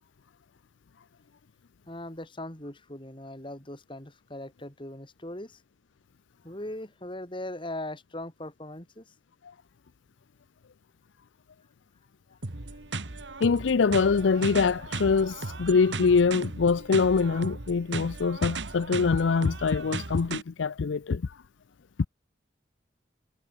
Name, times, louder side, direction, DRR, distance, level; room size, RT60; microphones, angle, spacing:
voice 1, 1.9-5.6 6.4-9.1, left 1 dB, 25° left, 3.5 m, -39 dB
sound 1, 12.4-20.4, right 3 dB, 75° right, 1.9 m, -36 dB
voice 2, 13.4-21.3, left 5 dB, 90° left, 0.5 m, -24 dB
head